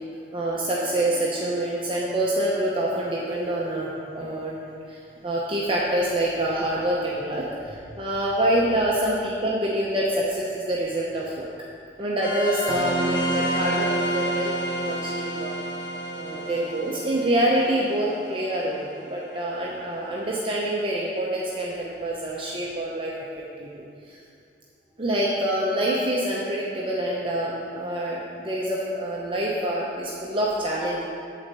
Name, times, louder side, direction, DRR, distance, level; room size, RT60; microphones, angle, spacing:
voice 1, 0.3-4.5 4.9-5.0 5.2-11.5 12.0-15.5 16.2-23.1 23.6-24.2 25.0-31.0, right 1 dB, 30° right, -5 dB, 0.8 m, -26 dB
sound 1, 12.2-19.3, right 1 dB, 25° left, 1.2 m, -29 dB
8.6 x 4.2 x 6.8 m, 2.5 s
head